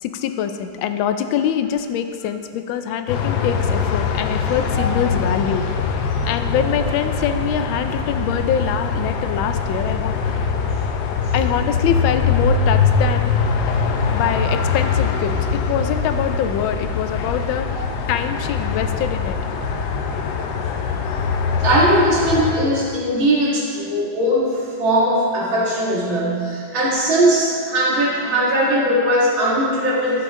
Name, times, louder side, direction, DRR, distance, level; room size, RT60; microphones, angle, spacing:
voice 1, 0.0-5.6 6.2-10.1 11.3-13.3 14.1-19.4, left 8 dB, 90° left, 8 dB, 1.4 m, -24 dB
sound 1, 3.1-22.5, left 5 dB, 70° left, 1.1 m, -22 dB
voice 2, 21.6-30.2, right 1 dB, 85° right, -6 dB, 2.7 m, -19 dB
11.5 x 6.9 x 3.7 m, 2.3 s
omnidirectional pair, 2.1 m